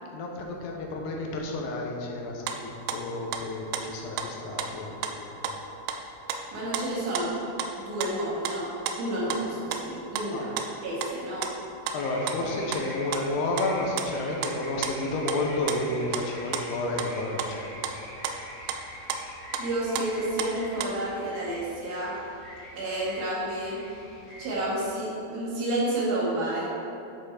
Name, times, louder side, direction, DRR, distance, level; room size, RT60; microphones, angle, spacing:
voice 1, 0.1-5.4 10.3-10.4 11.9-18.0 18.6-18.9, left 2 dB, 80° left, 0 dB, 2.9 m, -31 dB
sound 1, 2.3-2.6 2.9-3.4 3.7-5.1 5.4-7.3 7.5-7.7 8.0-9.4 9.7-10.3 10.6-11.1 11.4-12.0 12.3-13.7 14.0-15.4 15.7-17.1 17.4-17.6 17.8-18.0 18.2-19.7 19.9-21.1, right 7 dB, 80° right, 2.6 m, -33 dB
voice 2, 6.5-7.3 7.8-8.7 9.0-10.5 10.8-11.5 19.6-22.2 22.7-24.0 24.4-26.7, right 1 dB, 65° right, -6 dB, 3.4 m, -30 dB
sound 2, 11.9-24.8, equal, 45° left, 1.0 m, -45 dB
10.5 x 6.2 x 4.0 m, 2.8 s
omnidirectional pair, 4.8 m